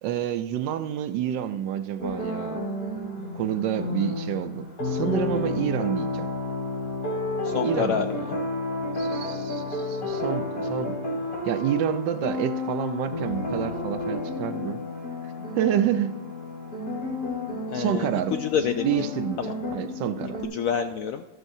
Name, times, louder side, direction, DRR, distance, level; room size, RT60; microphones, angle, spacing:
voice 1, 0.0-2.7 3.3-6.3 7.6-8.0 8.9-11.0 11.5-14.8 15.6-16.2 17.7-18.3 18.8-20.4, right 10 dB, 75° right, 11 dB, 1.3 m, -28 dB
sound 1, 2.0-20.4, left 2 dB, 50° left, 2.7 m, -31 dB
voice 2, 7.4-8.4 17.7-19.1 19.4-19.5 20.5-21.3, left 8 dB, 85° left, 7 dB, 0.7 m, -28 dB
13.0 x 12.5 x 2.7 m, 1.1 s
omnidirectional pair, 2.0 m